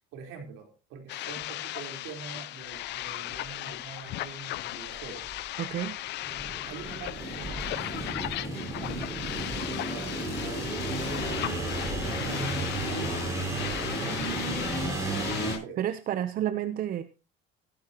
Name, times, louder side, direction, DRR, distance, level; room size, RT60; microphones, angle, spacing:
voice 1, 0.1-5.6 6.7-8.2 8.4-14.4 14.7-15.9, right 6 dB, 80° right, 4.2 m, -45 dB
sound 1, 1.1-15.6, left 16 dB, 55° left, 0.6 m, -37 dB
sound 2, 3.3-3.4 4.2-4.3 4.9-5.4 6.2-15.5, right 2 dB, 15° right, 6.0 m, -33 dB
voice 2, 5.6-6.0 15.8-17.0, right 11 dB, 45° right, 0.8 m, -30 dB
15.5 x 12.5 x 3.0 m
cardioid pair, 145°, 21 cm